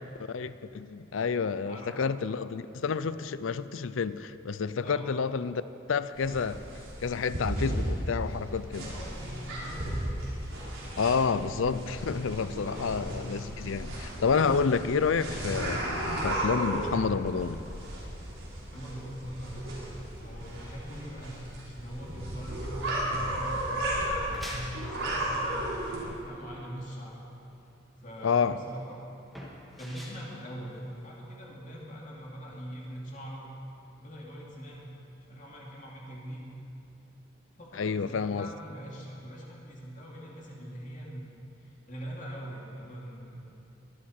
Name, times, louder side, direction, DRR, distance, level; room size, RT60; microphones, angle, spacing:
voice 1, 0.3-5.6 5.9-6.6 7.0-8.9 11.0-17.6 28.2-28.6 37.7-38.5, left 5 dB, 85° left, 0.5 m, -29 dB
voice 2, 1.6-2.2 4.8-5.1 8.8-10.1 12.5-13.3 18.7-19.9 20.2-21.3 21.7-27.2 28.0-29.0 29.8-33.5 33.9-34.9 35.3-36.5 37.6-41.3 41.6-43.4, equal, 40° left, 2.6 m, -43 dB
sound 1, 6.2-26.0, right 1 dB, 85° right, 4.3 m, -34 dB
sound 2, 24.2-31.4, equal, ahead, 2.1 m, -47 dB
21.5 x 12.5 x 4.4 m
head